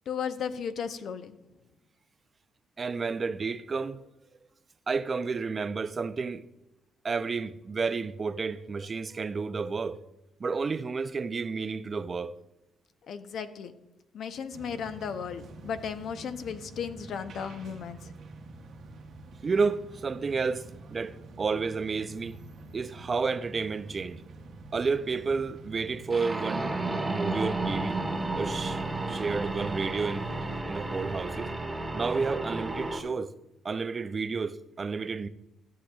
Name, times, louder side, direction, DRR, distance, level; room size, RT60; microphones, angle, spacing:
voice 1, 0.1-1.3 13.1-13.7 14.1-18.0, left 7 dB, 65° left, 0.6 m, -35 dB
voice 2, 2.8-4.0 4.9-6.4 7.0-10.0 10.4-12.3 19.4-22.4 22.7-24.2 24.7-26.8 27.1-28.0 28.3-28.8 29.1-30.3 30.7-31.5 31.9-33.3 33.6-35.3, right 4 dB, 35° right, 0.4 m, -31 dB
sound 1, 14.5-30.6, right 2 dB, 60° right, 0.8 m, -47 dB
sound 2, 26.1-33.0, right 2 dB, 15° right, 1.1 m, -32 dB
14.0 x 7.4 x 2.3 m
cardioid pair, 90°, 0 cm